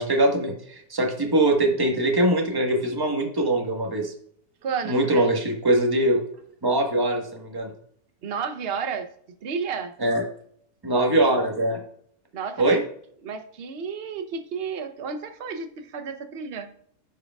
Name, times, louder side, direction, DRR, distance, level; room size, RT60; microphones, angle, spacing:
voice 1, 0.0-4.1 4.8-6.2 6.6-7.7 10.0-10.2 10.8-11.8 12.6-12.8, right 1 dB, 15° right, 2 dB, 1.3 m, -22 dB
voice 2, 4.6-5.3 8.2-9.1 9.4-9.9 12.3-12.8 13.2-16.7, right 6 dB, 45° right, 7 dB, 0.9 m, -32 dB
14.5 x 4.8 x 2.4 m, 0.63 s
omnidirectional pair, 1.6 m